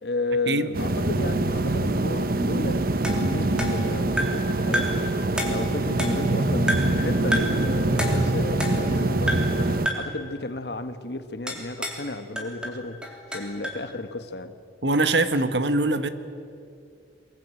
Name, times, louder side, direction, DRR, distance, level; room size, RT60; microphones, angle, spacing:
voice 1, 0.0-2.9 3.1-5.1 5.5-13.1 13.3-14.6, left 2 dB, 65° left, 10 dB, 1.4 m, -33 dB
sound 1, 0.7-9.9, right 2 dB, 55° right, 1.1 m, -24 dB
sound 2, 3.0-4.5 4.7-5.1 5.4-6.3 6.7-7.0 7.3-7.6 8.0-9.0 9.3-9.6 9.9-10.2 11.5-12.1 12.4-13.8, equal, 5° right, 3.4 m, -30 dB
voice 2, 14.8-16.1, right 2 dB, 80° right, 11 dB, 1.4 m, -22 dB
24.0 x 21.5 x 9.1 m, 2.5 s
head